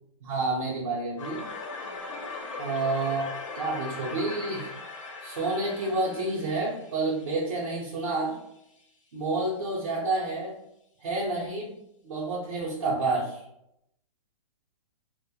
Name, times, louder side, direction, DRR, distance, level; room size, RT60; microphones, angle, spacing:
voice 1, 0.2-1.5 2.6-3.3 3.5-4.7 5.2-8.4 9.1-10.6 11.0-11.7 12.0-13.4, right 2 dB, 60° right, -7 dB, 0.8 m, -29 dB
sound 1, 1.2-8.0, left 3 dB, 65° left, 0.7 m, -39 dB
3.1 x 2.1 x 2.3 m, 0.79 s
hypercardioid pair, 170°, 17 cm